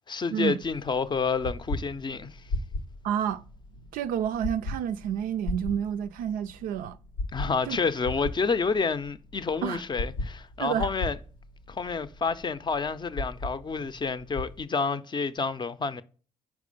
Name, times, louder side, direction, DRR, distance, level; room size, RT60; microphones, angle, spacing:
voice 1, 0.1-2.3 7.3-11.2 11.7-16.0, left 4 dB, 30° left, 0.5 m, -29 dB
sound 1, 0.6-14.6, left 2 dB, 85° left, 0.7 m, -37 dB
voice 2, 3.0-3.4 3.9-7.0 7.7-7.8 9.6-9.8 10.6-10.9, right 9 dB, 65° right, 0.4 m, -29 dB
4.8 x 4.3 x 5.1 m
hypercardioid pair, 45°, 15 cm